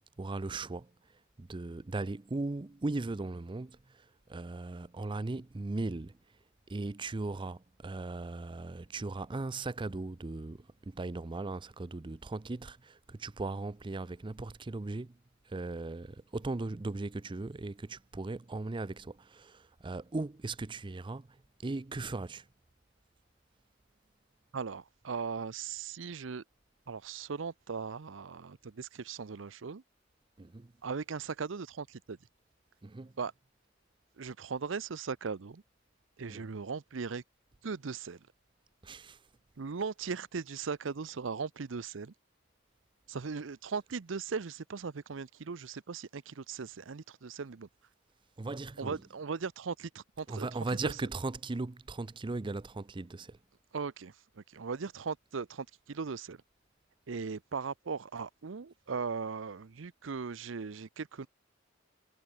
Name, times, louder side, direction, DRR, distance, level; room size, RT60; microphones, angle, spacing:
voice 1, 0.2-0.9 1.4-6.2 6.7-15.2 15.5-22.5 30.4-30.7 32.8-33.1 36.3-36.5 38.8-39.2 48.4-49.0 50.3-53.4, right 2 dB, 25° right, 0.5 m, -38 dB
voice 2, 24.5-26.4 26.9-29.8 30.8-32.2 33.2-33.3 34.2-35.6 36.2-37.2 37.6-38.2 39.6-42.1 43.1-47.7 48.8-50.5 50.8-50.9 53.7-56.4 57.1-61.3, right 5 dB, 75° right, 0.6 m, -38 dB
head